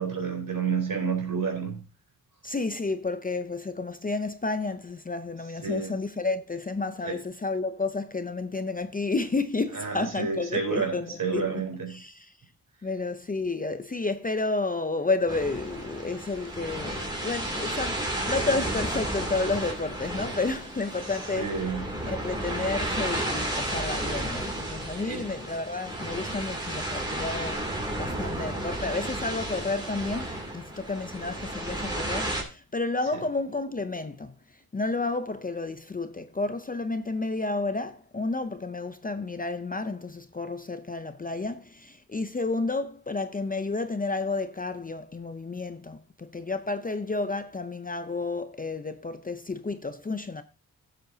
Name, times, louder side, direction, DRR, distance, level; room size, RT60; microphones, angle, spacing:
voice 1, 0.0-1.8 5.6-5.9 7.0-7.2 9.7-12.0 21.3-21.8 25.0-25.2, right 5 dB, 60° right, 3.9 m, -30 dB
voice 2, 2.4-11.6 11.9-12.3 12.8-21.5 22.1-34.3 34.7-50.4, left 3 dB, 25° left, 0.5 m, -31 dB
sound 1, 15.3-32.4, right 1 dB, 10° right, 2.6 m, -32 dB
15.5 x 7.7 x 2.7 m
wide cardioid pair, 150°, 36 cm